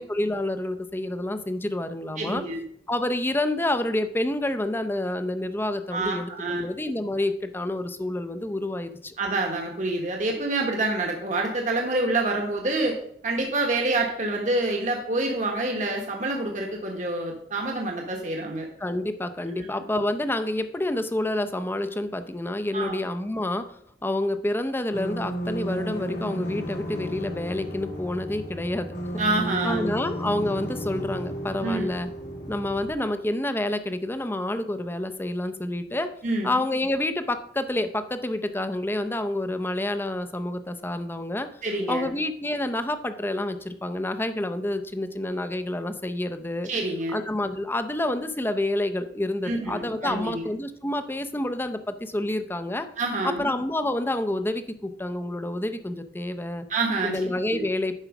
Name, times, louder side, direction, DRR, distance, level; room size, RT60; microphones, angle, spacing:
voice 1, 0.0-2.4 2.9-9.1 18.8-23.7 24.0-28.9 29.6-32.1 32.5-36.1 36.4-41.5 41.9-46.7 47.1-52.9 53.2-56.7 57.0-58.0, left 1 dB, 10° left, 9 dB, 0.6 m, -28 dB
voice 2, 2.2-2.6 5.9-6.6 9.2-13.0 13.2-18.7 19.5-19.7 22.7-23.0 29.2-29.9 31.6-31.9 36.2-36.5 41.6-42.1 46.6-47.2 49.4-50.4 53.0-53.4 56.7-57.2 57.5-57.6, right 2 dB, 45° right, 1 dB, 1.2 m, -27 dB
sound 1, 24.9-32.9, equal, 80° left, 2.1 m, -33 dB
9.9 x 4.6 x 5.9 m, 0.70 s
head